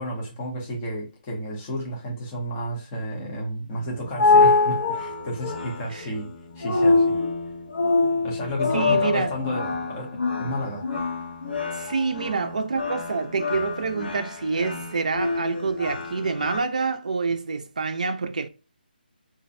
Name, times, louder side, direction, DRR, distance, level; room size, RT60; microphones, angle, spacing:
voice 1, 0.0-6.3 6.6-7.2 8.2-10.8, equal, 10° left, 0.5 m, -32 dB
sound 1, 3.7-16.6, left 3 dB, 65° left, 0.8 m, -25 dB
voice 2, 8.7-9.3 11.7-18.5, right 4 dB, 45° right, 0.4 m, -27 dB
2.4 x 2.0 x 2.6 m
hypercardioid pair, 180°, 5 cm